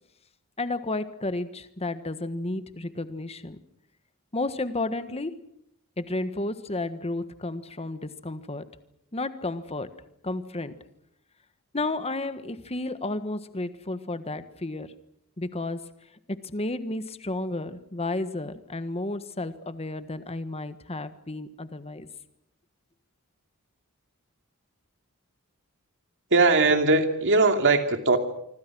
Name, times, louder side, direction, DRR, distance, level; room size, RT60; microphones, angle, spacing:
voice 1, 0.6-3.6 4.3-5.3 6.0-8.7 9.1-10.0 10.2-10.8 11.7-14.9 15.4-15.9 16.3-22.1, left 2 dB, 30° left, 11 dB, 1.5 m, -32 dB
voice 2, 26.3-28.2, right 3 dB, 55° right, 6 dB, 2.8 m, -20 dB
26.0 x 25.5 x 6.2 m, 0.76 s
head